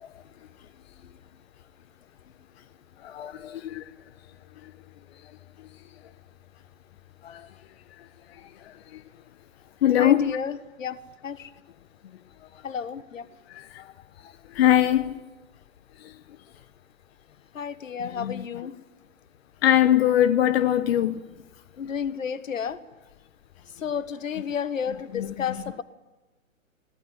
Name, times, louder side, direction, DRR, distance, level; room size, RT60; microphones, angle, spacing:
voice 1, 3.0-3.8 7.2-7.5 8.9-9.0 9.8-10.4 13.5-13.9 14.5-15.2 16.0-16.1 18.2-18.4 19.6-21.2 25.1-25.3, left 11 dB, 50° left, 0.9 m, -22 dB
voice 2, 9.9-11.5 12.6-13.3 17.5-18.7 21.8-22.8 23.8-25.8, left 7 dB, 70° left, 1.5 m, -32 dB
22.0 x 17.5 x 9.6 m
figure-of-eight pair, 125°, 40 cm